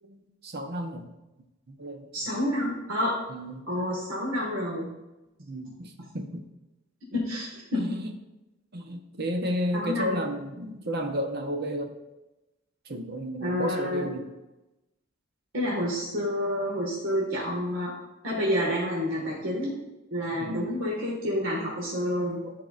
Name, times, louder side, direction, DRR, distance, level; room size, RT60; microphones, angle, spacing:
voice 1, 0.0-1.1 1.8-2.0 3.3-3.6 5.5-6.4 7.7-8.1 8.7-11.9 12.8-14.2 20.4-20.8 22.4-22.5, equal, 50° right, 4 dB, 0.9 m, -32 dB
voice 2, 2.1-3.1 3.7-4.9 7.1-7.8 9.7-10.3 13.4-14.1 15.5-17.9 18.2-19.7 20.1-22.4, left 1 dB, 75° right, -5 dB, 1.8 m, -29 dB
14.0 x 4.7 x 2.5 m, 1.0 s
head